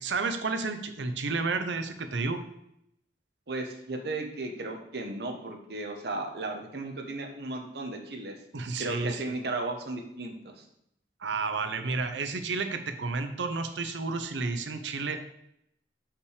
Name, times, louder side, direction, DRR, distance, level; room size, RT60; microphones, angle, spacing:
voice 1, 0.0-2.4 8.5-9.3 11.2-15.3, right 4 dB, 85° right, 9 dB, 0.7 m, -31 dB
voice 2, 3.5-8.3 8.8-10.6, right 2 dB, 60° right, 3 dB, 1.0 m, -35 dB
5.7 x 4.8 x 5.0 m, 0.76 s
head